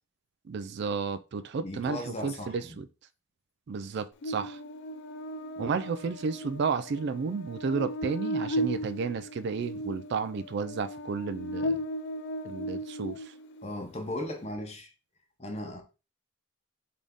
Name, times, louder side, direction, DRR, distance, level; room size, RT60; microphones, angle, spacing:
voice 1, 0.5-2.9 3.7-4.6 5.6-11.8 12.4-13.3, right 5 dB, 50° right, 0.3 m, -32 dB
voice 2, 1.6-2.8 13.6-14.9 15.4-15.8, left 1 dB, 30° left, 0.9 m, -37 dB
Buzz, 4.2-13.7, equal, 55° left, 0.3 m, -36 dB
3.9 x 3.5 x 3.5 m
head